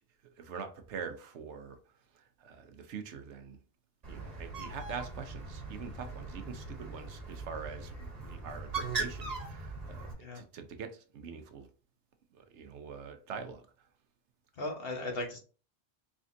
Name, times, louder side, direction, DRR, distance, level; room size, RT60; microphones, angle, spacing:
voice 1, 0.4-1.8 2.1-3.6 4.1-11.7 12.3-13.7, right 6 dB, 80° right, 1.0 m, -44 dB
Bird, 4.0-10.1, right 3 dB, 35° right, 1.3 m, -40 dB
voice 2, 14.6-15.4, left 2 dB, 60° left, 1.3 m, -37 dB
4.3 x 3.6 x 2.6 m
omnidirectional pair, 1.2 m